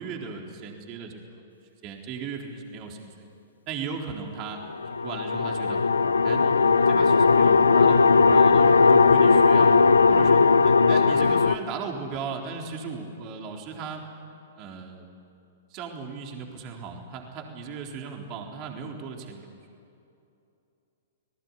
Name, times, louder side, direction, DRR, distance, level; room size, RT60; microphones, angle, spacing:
voice 1, 0.0-1.4 1.8-3.3 3.7-4.6 4.9-5.8 6.2-9.7 10.1-14.0 14.6-15.1 15.7-19.6, right 5 dB, 40° right, 1 dB, 4.0 m, -37 dB
sound 1, 4.7-11.6, left 4 dB, 85° left, 0.9 m, -18 dB
29.5 x 20.0 x 9.9 m, 2.7 s
figure-of-eight pair, 110°, 0 cm